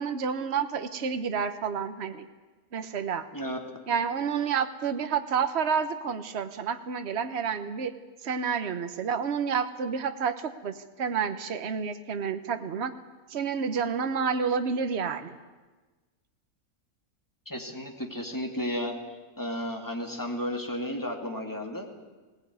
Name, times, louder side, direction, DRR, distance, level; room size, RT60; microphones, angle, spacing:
voice 1, 0.0-2.3 2.7-3.3 3.9-7.9 8.2-12.9 13.3-15.4, right 6 dB, 50° right, 9 dB, 1.3 m, -29 dB
voice 2, 17.5-18.9 19.4-21.9, equal, 15° left, 2 dB, 2.3 m, -33 dB
21.0 x 17.5 x 9.5 m, 1.3 s
omnidirectional pair, 1.6 m